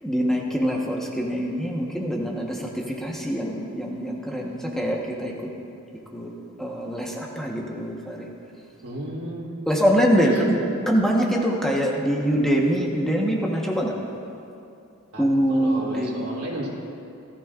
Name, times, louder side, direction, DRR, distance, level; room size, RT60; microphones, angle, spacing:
voice 1, 0.0-5.3 6.1-6.3 6.6-8.3 9.7-13.9 15.2-16.3, equal, ahead, -2 dB, 1.1 m, -24 dB
voice 2, 8.8-9.6 10.2-10.5 15.1-16.7, right 1 dB, 85° right, -4 dB, 3.0 m, -33 dB
18.5 x 13.5 x 2.5 m, 2.6 s
head